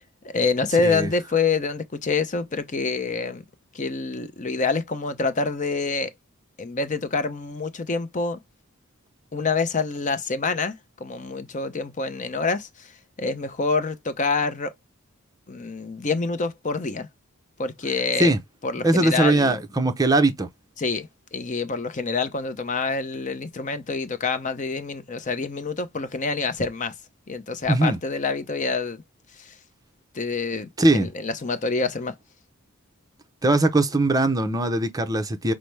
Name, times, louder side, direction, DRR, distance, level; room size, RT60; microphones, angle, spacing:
voice 1, 0.2-3.4 3.7-6.1 6.6-8.4 9.3-12.9 13.2-14.7 15.5-17.1 17.6-18.3 18.6-19.6 20.8-26.9 27.3-29.0 29.4-29.5 30.1-30.7 30.9-32.1, left 4 dB, 35° left, 0.6 m, -26 dB
voice 2, 18.8-20.5 27.7-28.0 30.8-31.1 33.4-35.5, right 2 dB, 15° right, 0.6 m, -20 dB
5.7 x 2.0 x 3.2 m
head